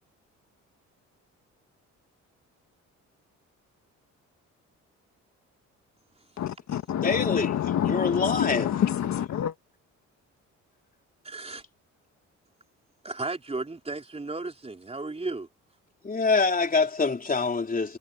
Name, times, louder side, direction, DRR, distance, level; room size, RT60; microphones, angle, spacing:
voice 1, 6.4-9.5, left 10 dB, 65° left, 1.6 m, -27 dB
voice 2, 7.0-8.8 16.0-18.0, left 4 dB, 30° left, 3.6 m, -25 dB
voice 3, 11.2-11.6 13.0-15.5, right 3 dB, 20° right, 4.3 m, -34 dB
cardioid pair, 90°, 30 cm